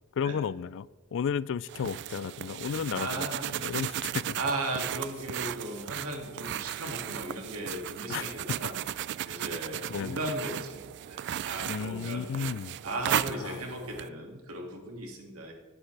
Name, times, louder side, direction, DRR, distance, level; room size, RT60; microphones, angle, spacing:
voice 1, 0.2-3.3 3.6-4.4 8.1-8.2 9.9-10.2 11.7-12.8 13.4-13.6, left 7 dB, 60° left, 20 dB, 0.3 m, -33 dB
sound 1, 1.7-14.1, right 11 dB, 55° right, 0.3 m, -36 dB
voice 2, 2.9-3.6 4.4-8.7 9.2-10.8 11.1-12.3 12.8-15.5, right 1 dB, 75° right, 1 dB, 2.3 m, -36 dB
18.5 x 9.9 x 3.4 m, 1.3 s
head